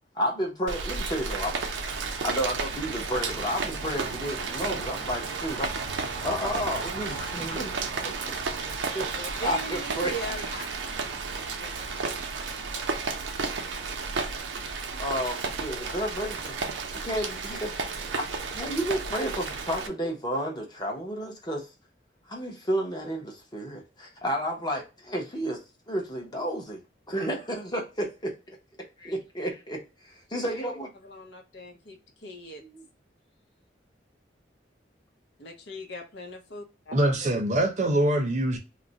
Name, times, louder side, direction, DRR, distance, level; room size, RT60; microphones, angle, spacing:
voice 1, 0.1-1.5 2.2-5.9 6.2-8.4 8.6-9.1 9.4-10.1 15.0-16.5 16.9-17.8 18.2-21.7 22.3-26.8 27.1-28.6 29.0-30.9 32.6-32.8, equal, 25° left, 0.7 m, -31 dB
Rain, 0.7-19.9, right 4 dB, 85° right, 0.5 m, -33 dB
voice 2, 9.1-10.7 11.6-11.7 31.0-32.6 35.4-36.9, equal, 75° left, 0.7 m, -39 dB
voice 3, 36.9-38.6, right 1 dB, 40° right, 0.6 m, -24 dB
2.4 x 2.1 x 3.8 m
head